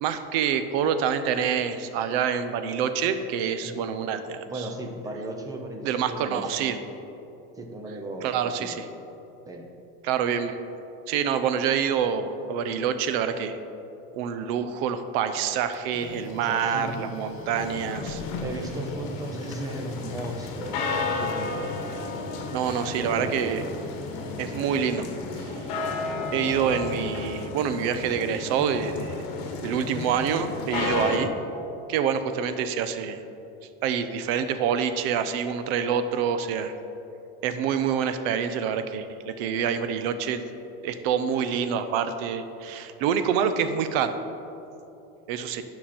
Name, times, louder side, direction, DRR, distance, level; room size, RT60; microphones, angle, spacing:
voice 1, 0.0-4.7 5.8-6.8 8.2-8.8 10.0-10.5 11.1-13.6 14.1-18.2 22.5-23.7 24.4-25.1 25.4-25.6 26.3-29.2 29.6-31.3 31.9-33.2 33.8-36.8 37.4-40.4 40.8-44.1 45.3-45.6, right 7 dB, 70° right, 10 dB, 0.6 m, -26 dB
voice 2, 4.5-6.8 7.6-8.3 8.6-8.8 9.5-9.6 16.2-17.1 18.4-21.8 22.8-23.6 31.0-31.3, right 1 dB, 10° right, 3 dB, 0.6 m, -36 dB
Printer, 15.4-25.2, left 4 dB, 40° left, 0.8 m, -42 dB
sound 1, 17.6-31.2, left 3 dB, 60° left, 1.2 m, -33 dB
10.0 x 5.9 x 4.3 m, 2.9 s
cardioid pair, 165°, 31 cm